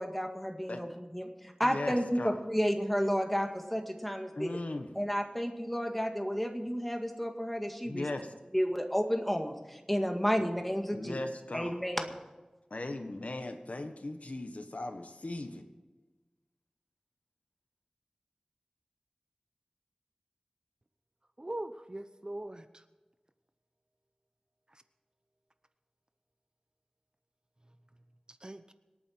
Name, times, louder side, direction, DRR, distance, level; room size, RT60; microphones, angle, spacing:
voice 1, 0.0-4.6 5.0-8.1 8.5-11.2 11.5-12.2, equal, 5° left, 4 dB, 2.0 m, -32 dB
voice 2, 1.6-2.4 4.4-4.9 7.8-8.3 10.4-10.5 10.9-11.8 12.7-15.6, left 2 dB, 70° left, 6 dB, 1.4 m, -38 dB
voice 3, 21.4-22.8 24.7-24.8 28.3-28.7, right 1 dB, 35° right, 10 dB, 0.8 m, -41 dB
26.0 x 8.9 x 4.6 m, 1.2 s
wide cardioid pair, 55°, 2 cm